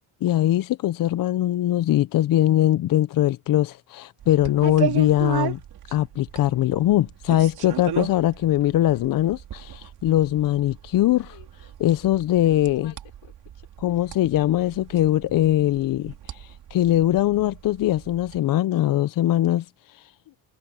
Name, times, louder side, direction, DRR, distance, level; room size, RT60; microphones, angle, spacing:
voice 1, 0.2-5.6 5.9-12.9 13.8-20.1, left 13 dB, 45° left, 0.6 m, -22 dB
sound 1, 4.2-18.4, right 9 dB, 55° right, 4.4 m, -36 dB
voice 2, 11.0-11.5 12.4-14.0 20.2-20.4, left 14 dB, 65° left, 4.3 m, -51 dB
cardioid pair, 130°, 47 cm